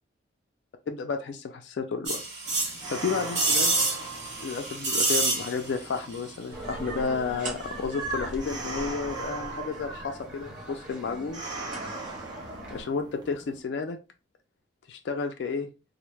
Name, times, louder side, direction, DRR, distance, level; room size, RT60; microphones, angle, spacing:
voice 1, 0.9-2.2 2.9-3.8 4.4-11.4 12.7-14.0 14.9-15.7, left 5 dB, 60° left, 5 dB, 0.3 m, -32 dB
sound 1, 2.1-5.9 6.1-6.2, right 2 dB, 60° right, 1.1 m, -27 dB
sound 2, 2.4-13.6, right 3 dB, 20° right, 0.4 m, -41 dB
sound 3, 6.5-12.8, right 2 dB, 40° right, 0.7 m, -39 dB
2.1 x 2.1 x 3.1 m, 0.30 s
head